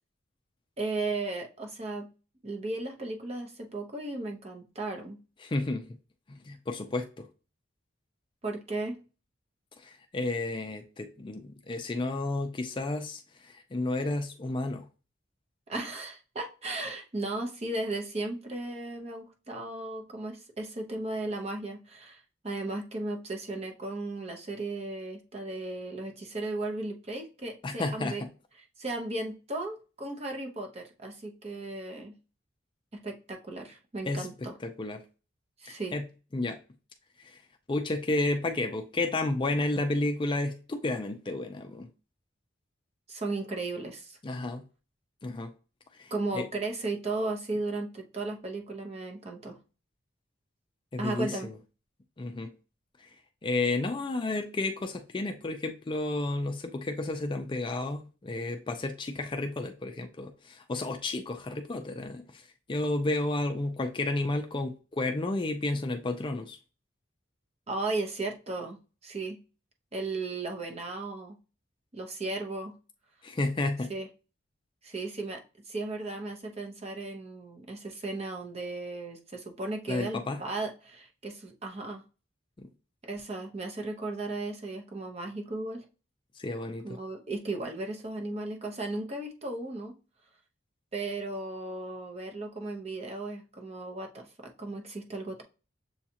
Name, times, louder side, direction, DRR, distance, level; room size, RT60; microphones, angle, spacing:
voice 1, 0.8-2.1 2.4-5.2 8.4-9.0 15.7-28.2 28.8-32.1 32.9-34.5 35.6-35.9 43.1-44.2 46.1-49.6 51.0-51.5 67.7-68.8 69.0-69.4 69.9-71.4 71.9-72.7 73.9-74.1 74.8-82.0 83.0-85.8 86.8-89.9 90.9-95.4, right 2 dB, 30° right, 0.8 m, -35 dB
voice 2, 5.4-6.0 6.3-7.3 9.8-14.9 27.6-28.3 34.0-35.0 35.7-36.6 37.2-37.4 37.7-41.9 44.2-44.6 45.2-45.5 45.9-46.5 50.9-51.5 52.2-52.5 53.0-53.1 53.4-66.6 73.2-73.9 79.9-80.4 82.6-82.7 86.3-87.0, left 2 dB, 25° left, 0.4 m, -32 dB
7.0 x 2.4 x 2.8 m
head